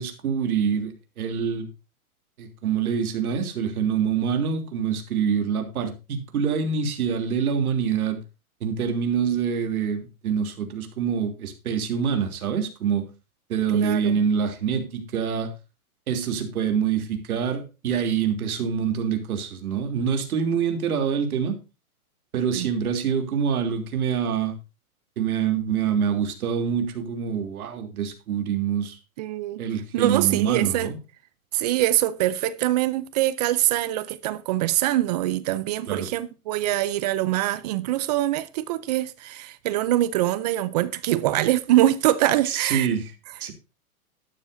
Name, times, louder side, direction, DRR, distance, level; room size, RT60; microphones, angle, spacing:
voice 1, 0.0-1.7 2.4-8.2 8.6-13.1 13.5-15.5 16.1-21.6 22.3-24.5 25.2-29.0 29.6-31.0 35.9-36.1 42.4-43.1 43.4-43.5, right 7 dB, 75° right, 3.1 m, -25 dB
voice 2, 13.7-14.2 22.5-22.7 29.2-29.6 29.9-30.9 31.5-42.9, right 14 dB, 30° right, 0.5 m, -24 dB
12.5 x 12.0 x 2.7 m
hypercardioid pair, 150°, 44 cm